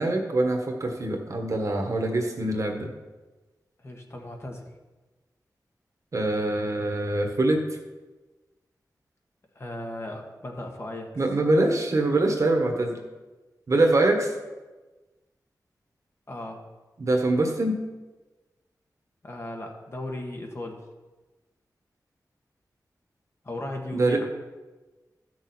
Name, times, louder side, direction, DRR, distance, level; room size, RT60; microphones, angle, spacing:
voice 1, 0.0-2.9 6.1-7.6 11.2-13.0 13.7-14.3 17.0-17.8 23.9-24.2, right 2 dB, 50° right, 3 dB, 1.6 m, -24 dB
voice 2, 3.8-4.7 9.5-11.1 16.3-16.6 19.2-20.8 23.4-24.3, left 1 dB, 40° left, 1 dB, 1.5 m, -36 dB
13.5 x 6.3 x 4.4 m, 1.2 s
wide cardioid pair, 100°, 7 cm